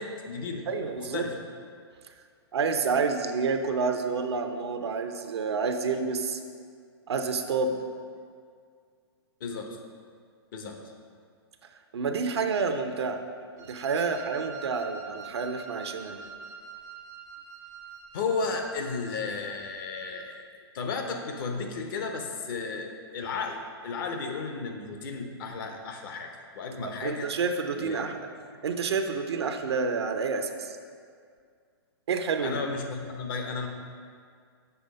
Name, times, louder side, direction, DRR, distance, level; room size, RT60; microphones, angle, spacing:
voice 1, 0.0-0.6 1.0-1.3 9.4-9.8 10.5-10.8 18.1-27.3 27.7-28.2 32.4-33.7, left 4 dB, 55° left, 4 dB, 1.0 m, -34 dB
voice 2, 0.7-1.2 2.5-6.4 7.1-7.8 11.9-13.2 13.6-16.2 26.8-28.3 28.6-30.8 32.1-32.6, right 5 dB, 80° right, 6 dB, 0.7 m, -29 dB
Wind instrument woodwind instrument, 13.6-20.3, right 5 dB, 20° right, 0.5 m, -45 dB
6.9 x 4.8 x 5.2 m, 2.1 s
hypercardioid pair, 135°, 13 cm